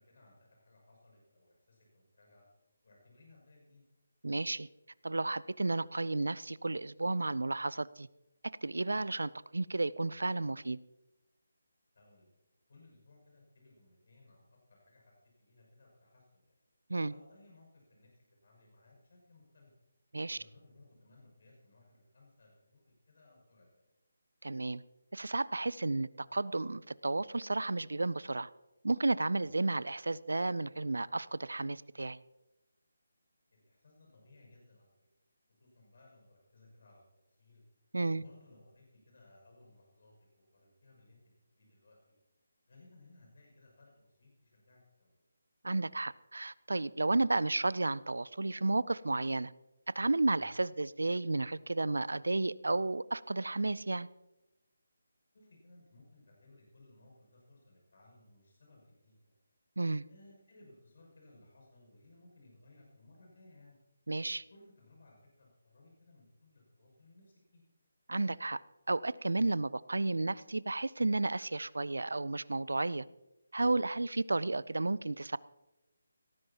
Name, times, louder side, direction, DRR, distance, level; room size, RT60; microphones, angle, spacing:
voice 1, 0.0-2.5 2.8-3.8 11.9-12.3 12.7-16.5 17.1-19.7 20.3-23.9 29.4-29.5 33.5-34.9 35.6-37.0 37.3-37.6 38.1-41.2 41.5-42.1 42.7-45.2 50.3-50.5 55.3-59.4 60.1-63.8 64.5-67.6, left 2 dB, 60° left, -1 dB, 6.2 m, -61 dB
voice 2, 4.2-4.7 5.0-8.1 8.6-10.8 16.9-17.1 20.1-20.4 24.4-24.8 25.1-28.5 28.8-32.2 37.9-38.2 45.6-49.5 49.9-54.1 59.8-60.0 64.1-64.4 68.1-68.6 68.9-73.1 73.5-75.4, right 2 dB, 80° right, 20 dB, 0.4 m, -32 dB
18.5 x 14.0 x 2.9 m, 0.98 s
figure-of-eight pair, 155°, 0 cm